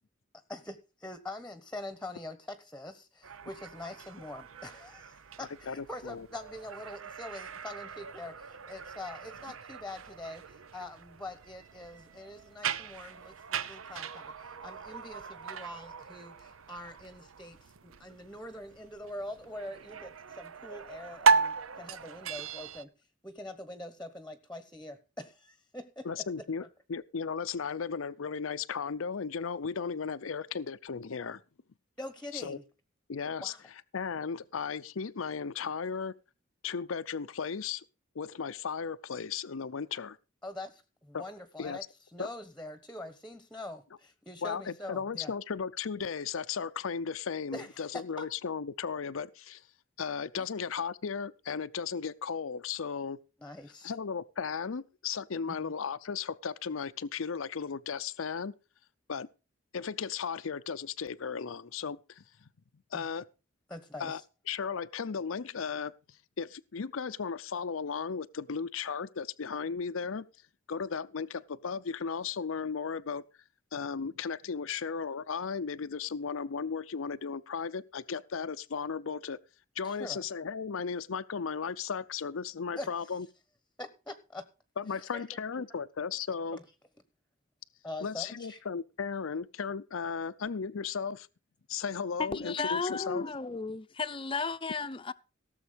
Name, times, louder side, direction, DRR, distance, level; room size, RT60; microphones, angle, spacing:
voice 1, 0.5-22.9 23.2-26.1 26.6-26.7 32.0-32.6 33.4-33.6 40.4-41.8 42.1-45.3 47.5-48.2 53.4-53.9 55.6-55.7 62.9-63.0 63.7-64.1 79.8-80.2 82.7-82.9 83.8-84.5 85.1-85.2 86.5-86.6 87.8-88.6, left 1 dB, 5° left, 1.1 m, -44 dB
sound 1, 3.2-22.8, right 5 dB, 90° right, 0.8 m, -36 dB
voice 2, 5.4-6.3 26.0-26.6 26.9-31.4 32.3-32.6 33.1-33.5 33.9-36.1 36.6-37.8 38.1-40.2 41.1-41.2 41.6-41.8 42.2-42.3 44.4-49.6 50.0-53.2 53.8-58.5 59.1-59.3 59.7-62.5 62.9-63.3 64.0-64.2 64.5-65.9 66.4-70.3 70.7-73.2 73.7-79.4 79.8-83.3 84.8-86.6 88.0-91.3 91.7-93.2, left 6 dB, 80° left, 0.6 m, -35 dB
voice 3, 92.2-95.1, left 4 dB, 25° left, 0.7 m, -34 dB
17.5 x 7.2 x 5.1 m
head